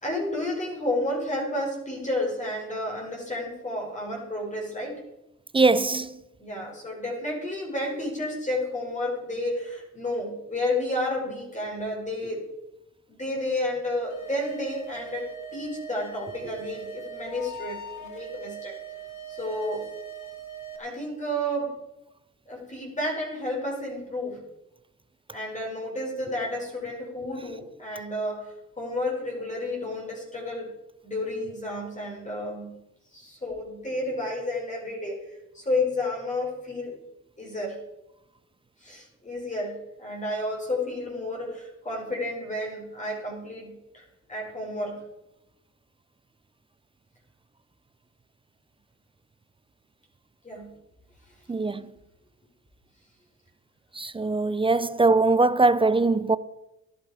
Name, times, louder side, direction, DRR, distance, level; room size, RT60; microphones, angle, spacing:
voice 1, 0.0-5.0 6.4-12.4 13.1-18.7 19.3-19.8 20.8-21.8 22.5-24.4 25.3-30.7 31.0-32.8 33.1-37.0 37.4-37.8 38.8-45.0 50.4-50.8 51.6-51.7, left 1 dB, 25° left, 4.9 m, -31 dB
voice 2, 5.5-6.1 51.5-51.9 54.0-56.4, right 3 dB, 15° right, 0.5 m, -21 dB
sound 1, 14.1-20.8, right 5 dB, 80° left, 2.1 m, -40 dB
14.5 x 11.0 x 4.9 m
cardioid pair, 90°, 30 cm